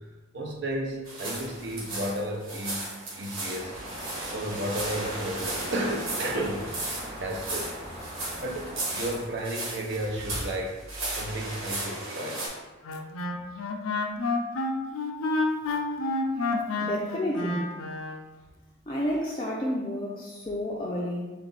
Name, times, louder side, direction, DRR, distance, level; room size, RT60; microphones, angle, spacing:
voice 1, 0.3-3.7 4.2-6.7 7.2-7.7 8.0-8.1 8.4-10.8 11.1-12.4, right 1 dB, 55° right, 0 dB, 0.8 m, -33 dB
sound 1, 1.1-12.5, right 2 dB, 80° right, 1.5 m, -35 dB
sound 2, 3.5-9.3, equal, 30° right, 1.0 m, -42 dB
Wind instrument woodwind instrument, 12.8-18.2, left 2 dB, 90° left, 0.5 m, -29 dB
voice 2, 16.8-17.6 18.9-21.3, left 1 dB, 20° left, -5 dB, 0.4 m, -30 dB
4.0 x 3.3 x 3.9 m, 1.2 s
head